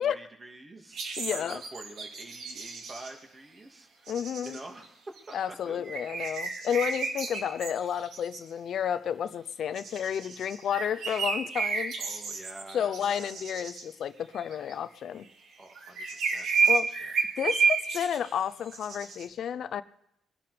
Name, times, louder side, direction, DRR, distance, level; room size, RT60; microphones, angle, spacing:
voice 1, 0.0-4.1 4.4-5.0 5.3-5.8 12.0-13.4 15.6-17.1, right 2 dB, 30° right, 3 dB, 2.6 m, -47 dB
sound 1, 0.9-3.1 4.1-4.9 5.2-5.4 5.8-8.4 9.7-13.8 14.3-14.7 15.7-18.4 18.7-19.2, right 5 dB, 70° right, 2.3 m, -31 dB
voice 2, 1.2-1.6 4.1-4.6 5.3-12.0 12.7-15.3 16.7-16.9 17.4-19.8, left 8 dB, 65° left, 14 dB, 0.7 m, -31 dB
22.0 x 11.5 x 5.2 m, 0.75 s
cardioid pair, 90°, 0 cm